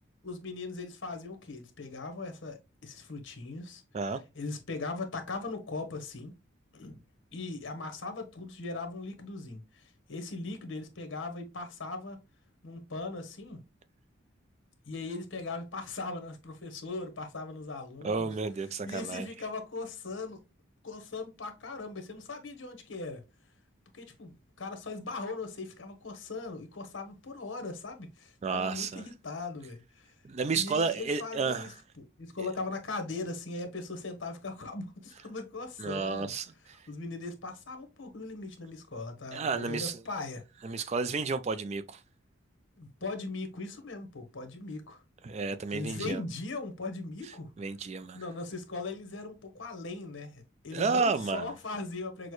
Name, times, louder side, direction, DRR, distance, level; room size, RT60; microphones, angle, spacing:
voice 1, 0.2-3.8 4.3-6.3 6.7-7.0 7.3-12.2 12.6-13.6 14.9-18.3 18.8-20.4 20.8-23.2 23.9-30.1 30.5-36.3 36.9-40.4 40.7-40.9 42.8-45.0 45.7-47.5 48.1-52.3, left 3 dB, 65° left, 1.0 m, -39 dB
voice 2, 18.0-19.3 28.4-29.1 30.2-31.7 32.4-32.5 35.8-36.8 39.3-40.0 40.6-42.0 45.2-46.2 47.6-48.2 50.7-51.5, right 4 dB, 35° right, 0.3 m, -31 dB
6.3 x 2.1 x 3.0 m
head